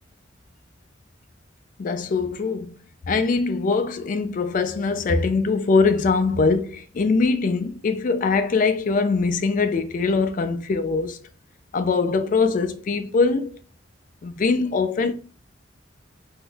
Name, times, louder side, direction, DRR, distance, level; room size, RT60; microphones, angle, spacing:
voice 1, 1.8-2.8 3.1-11.2 11.7-13.6 14.2-15.1, left 4 dB, 45° left, 0.3 m, -22 dB
3.5 x 2.6 x 2.3 m
head